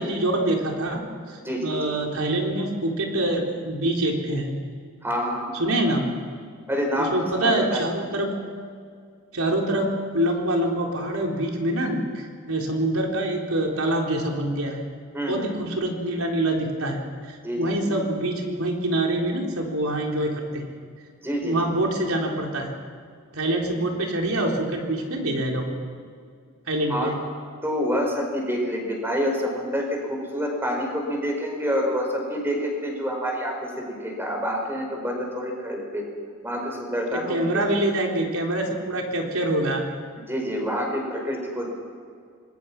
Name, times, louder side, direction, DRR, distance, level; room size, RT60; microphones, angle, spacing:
voice 1, 0.0-4.5 5.6-6.1 7.0-8.3 9.3-14.8 15.3-17.0 17.3-20.8 21.4-22.7 23.3-25.8 26.7-27.2 37.1-39.8, right 1 dB, 85° right, 1 dB, 4.0 m, -25 dB
voice 2, 1.4-1.9 5.0-5.5 6.7-7.8 15.1-15.6 17.4-17.9 21.2-21.6 26.9-27.1 27.6-36.0 36.4-37.7 40.2-41.7, equal, 10° right, 1 dB, 4.8 m, -27 dB
26.5 x 20.5 x 6.1 m, 2.1 s
head